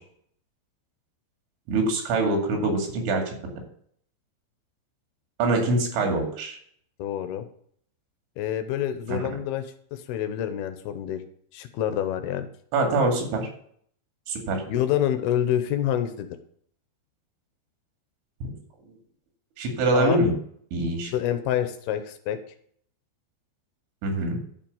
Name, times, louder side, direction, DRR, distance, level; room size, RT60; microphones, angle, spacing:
voice 1, 1.7-3.3 5.4-6.6 9.2-9.3 12.7-13.5 14.3-14.6 19.6-20.3 20.7-21.1 24.0-24.4, right 2 dB, 85° right, 2 dB, 4.8 m, -24 dB
voice 2, 7.0-7.5 8.4-11.2 11.5-12.5 14.7-16.3 19.9-20.2 21.1-22.4, left 11 dB, 75° left, 9 dB, 2.4 m, -27 dB
12.0 x 5.8 x 7.1 m, 0.64 s
omnidirectional pair, 5.2 m